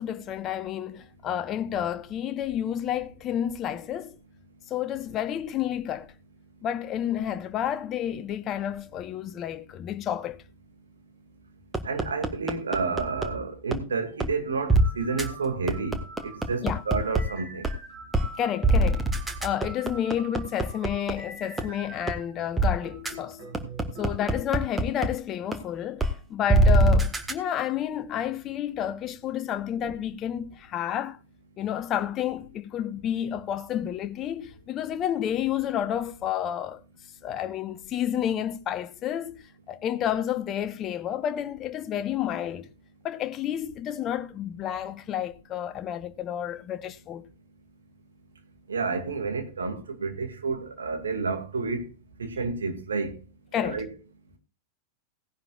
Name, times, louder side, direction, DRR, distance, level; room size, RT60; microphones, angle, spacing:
voice 1, 0.0-4.2 4.7-6.1 6.6-10.4 16.6-16.8 18.4-19.1 19.4-23.4 24.0-26.0 26.3-31.2 31.6-36.8 37.2-39.4 39.7-42.7 43.0-47.2 53.5-53.8, left 10 dB, 30° left, 1.0 m, -30 dB
sound 1, 11.7-13.3 13.7-13.8 14.2-14.3 14.7-14.8 15.2-15.3 15.7-17.2 17.6-17.7 18.1-18.3 18.6-21.1 21.6-21.7 22.1-22.2 22.6-22.7 23.1-23.2 23.5-25.1 25.5-25.6 26.0-26.1 26.5-27.3, right 2 dB, 10° right, 1.5 m, -22 dB
voice 2, 11.8-16.0 16.2-17.7 48.7-51.8 52.2-53.1 53.6-53.9, right 4 dB, 70° right, 2.3 m, -30 dB
sound 2, 14.1-14.2 14.8-22.3 22.8-24.5, right 2 dB, 45° right, 6.0 m, -45 dB
17.5 x 11.0 x 2.4 m
figure-of-eight pair, 90°, 0 cm